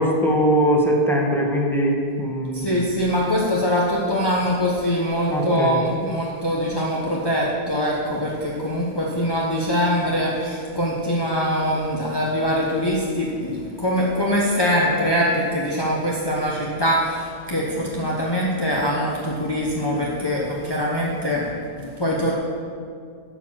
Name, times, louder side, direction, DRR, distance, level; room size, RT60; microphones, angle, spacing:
voice 1, 0.0-2.8 5.3-5.8, equal, ahead, -2 dB, 1.4 m, -21 dB
voice 2, 2.5-22.3, equal, 25° left, -4 dB, 1.0 m, -23 dB
12.0 x 4.9 x 7.4 m, 2.3 s
omnidirectional pair, 1.1 m